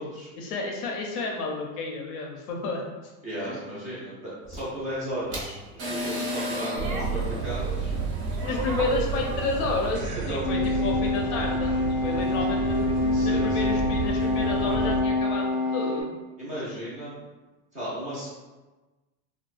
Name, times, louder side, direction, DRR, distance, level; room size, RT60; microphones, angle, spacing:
voice 1, 0.4-2.8 3.4-3.6 8.4-11.7 12.0-12.9 13.2-16.1, left 3 dB, 55° left, 0 dB, 0.5 m, -31 dB
voice 2, 3.2-7.9 10.3-10.4 13.1-13.7 16.4-17.2 17.7-18.3, equal, 15° right, -9 dB, 0.5 m, -35 dB
sound 1, 4.4-9.9, left 1 dB, 45° right, 0.8 m, -36 dB
sound 2, 6.8-15.0, right 4 dB, 85° right, 0.7 m, -31 dB
sound 3, 10.4-16.0, left 2 dB, 15° left, 0.7 m, -26 dB
2.4 x 2.2 x 2.4 m, 1.2 s
supercardioid pair, 155°, 44 cm